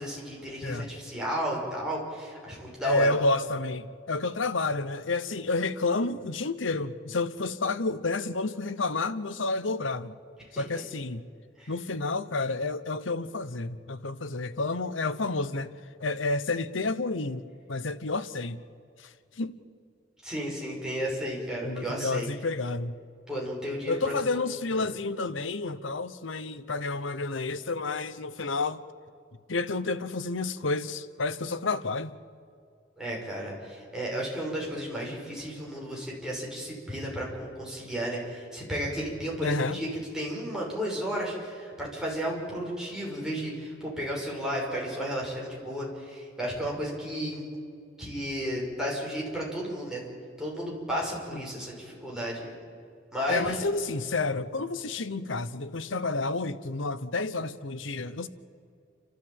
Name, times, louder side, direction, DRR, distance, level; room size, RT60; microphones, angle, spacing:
voice 1, 0.0-3.1 11.6-11.7 20.2-22.3 23.3-24.1 24.7-24.9 33.0-47.4 48.0-50.0 50.4-52.5 53.1-53.6, equal, 5° right, 5.9 m, -33 dB
voice 2, 2.8-10.1 10.5-11.2 11.7-15.7 16.0-17.4 17.7-18.6 19.0-19.1 19.4-19.6 21.6-22.9 23.9-28.8 29.5-32.1 39.4-39.8 51.3-51.4 53.3-58.3, left 3 dB, 80° left, 1.0 m, -30 dB
30.0 x 13.0 x 8.9 m
head